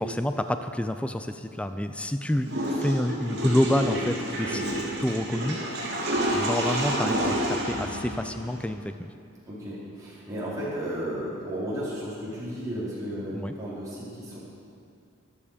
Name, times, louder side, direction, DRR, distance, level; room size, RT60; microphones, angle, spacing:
voice 1, 0.0-4.7 5.0-5.6 6.3-9.1 13.3-13.5, left 1 dB, 5° left, 8 dB, 0.4 m, -28 dB
Water / Toilet flush, 2.4-8.6, right 1 dB, 60° right, 3.3 m, -29 dB
voice 2, 9.5-14.4, equal, 15° right, -9 dB, 4.3 m, -34 dB
14.0 x 12.5 x 5.1 m, 2.4 s
head